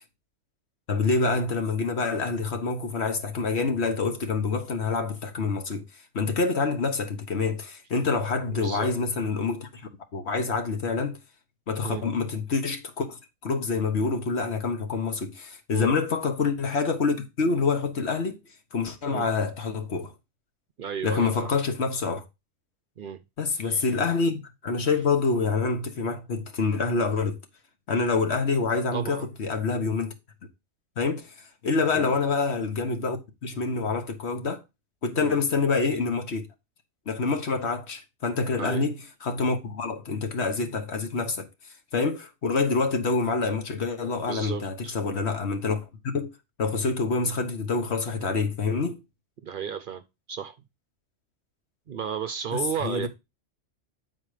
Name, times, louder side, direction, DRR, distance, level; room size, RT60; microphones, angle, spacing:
voice 1, 0.9-5.8 6.1-11.2 11.7-18.4 18.7-20.1 21.0-22.2 23.4-27.4 27.9-30.1 31.0-34.6 35.0-36.4 37.1-41.5 41.9-46.3 46.6-49.0 52.5-53.1, left 4 dB, 65° left, 1.5 m, -27 dB
voice 2, 8.5-8.9 11.8-12.0 15.7-15.9 19.1-19.3 20.8-21.5 23.0-23.2 23.6-23.8 28.9-29.3 31.9-32.2 35.2-35.4 38.6-38.8 44.2-45.0 49.4-50.0 50.3-50.5 51.9-53.1, right 7 dB, 55° right, 0.7 m, -33 dB
8.9 x 4.3 x 4.9 m
omnidirectional pair, 1.2 m